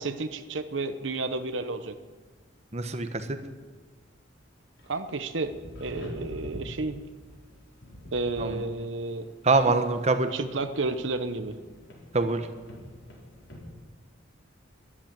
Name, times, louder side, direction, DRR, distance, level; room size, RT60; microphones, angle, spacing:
voice 1, 0.0-1.9 4.9-5.5 5.8-7.0 8.1-9.3 10.3-11.5, right 3 dB, 70° right, 9 dB, 0.9 m, -31 dB
voice 2, 2.7-3.3 8.4-8.6 9.4-10.3 12.1-12.5, right 3 dB, 35° right, 8 dB, 1.1 m, -24 dB
sound 1, 4.8-13.6, left 1 dB, 70° left, 4.7 m, -45 dB
13.5 x 11.5 x 8.9 m, 1.3 s
head